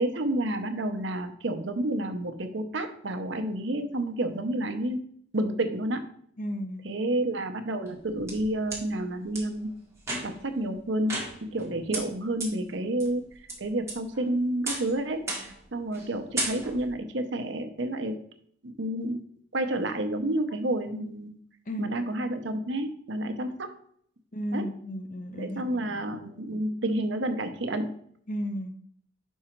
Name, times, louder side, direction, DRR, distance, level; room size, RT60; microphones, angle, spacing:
voice 1, 0.0-5.0 5.3-6.1 6.8-9.7 10.2-13.2 13.6-18.1 18.6-19.2 19.5-21.4 21.8-23.7 24.5-24.7 25.4-27.9, right 1 dB, 65° right, 8 dB, 0.7 m, -30 dB
voice 2, 6.4-6.9 15.4-15.5 21.7-21.9 24.3-26.0 28.3-28.7, equal, 40° left, 6 dB, 0.7 m, -34 dB
sound 1, 7.9-8.8 9.3-9.4 10.0-10.5 11.1-11.6 11.9-12.0 12.4-12.5 13.0-13.5 13.9-14.3 14.7-14.9 15.3-15.6 15.9-16.1 16.4-16.9, right 2 dB, 15° right, 1.8 m, -33 dB
5.4 x 4.9 x 4.4 m, 0.63 s
head